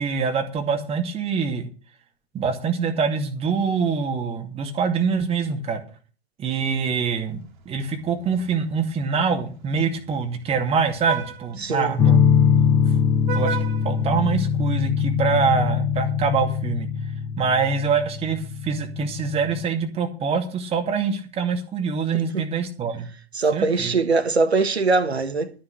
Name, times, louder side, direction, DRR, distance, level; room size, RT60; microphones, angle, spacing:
voice 1, 0.0-1.7 2.3-5.8 6.4-7.4 7.7-12.2 13.3-13.6 13.8-16.9 17.4-23.1 23.5-23.9, right 5 dB, 20° right, 2.3 m, -24 dB
Vehicle horn car horn honking, 6.7-14.9, right 7 dB, 50° right, 2.5 m, -38 dB
voice 2, 11.6-12.0 22.3-22.4 23.3-25.5, right 3 dB, 80° right, 1.6 m, -22 dB
sound 1, 12.0-19.6, left 7 dB, 10° left, 0.5 m, -22 dB
13.0 x 5.7 x 8.4 m
figure-of-eight pair, 115°, 31 cm